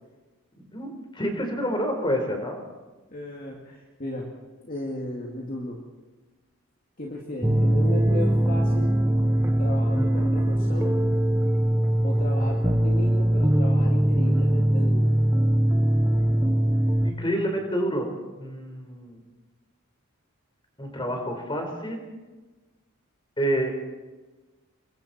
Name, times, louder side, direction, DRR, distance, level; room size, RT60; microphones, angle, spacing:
voice 1, 0.6-2.6 17.0-18.1 18.4-19.2 20.8-22.0 23.4-23.7, equal, 20° left, 3 dB, 4.4 m, -28 dB
voice 2, 3.1-4.3 4.6-5.8 7.0-8.9 9.6-11.0 12.0-15.1, left 1 dB, 40° left, -2 dB, 2.5 m, -35 dB
sound 1, 7.4-17.1, right 1 dB, 10° right, 1.1 m, -21 dB
28.5 x 22.5 x 4.4 m, 1.2 s
head